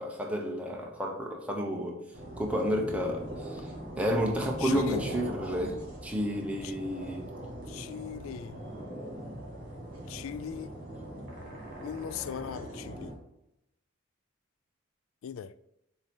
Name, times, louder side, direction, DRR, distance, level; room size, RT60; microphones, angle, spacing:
voice 1, 0.0-2.0 2.4-3.7 4.0-7.3, equal, 5° right, 0.8 m, -31 dB
sound 1, 2.1-13.1, right 1 dB, 40° right, 1.9 m, -41 dB
voice 2, 4.6-5.0 6.6-6.7 7.7-8.6 10.1-10.7 11.8-13.1 15.2-15.5, left 8 dB, 80° left, 0.3 m, -38 dB
6.9 x 2.8 x 5.3 m
head